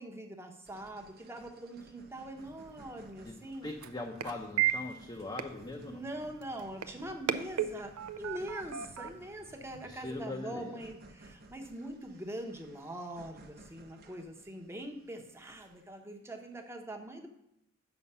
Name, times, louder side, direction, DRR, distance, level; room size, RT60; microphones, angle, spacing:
voice 1, 0.0-3.7 5.8-17.3, right 1 dB, 10° right, 4 dB, 0.9 m, -43 dB
sound 1, 0.6-16.1, right 2 dB, 45° right, 0.8 m, -58 dB
sound 2, 2.4-10.3, right 10 dB, 85° right, 0.5 m, -38 dB
voice 2, 3.6-6.0 9.8-10.8, left 2 dB, 20° left, 0 dB, 0.6 m, -41 dB
7.1 x 5.7 x 5.5 m, 0.83 s
head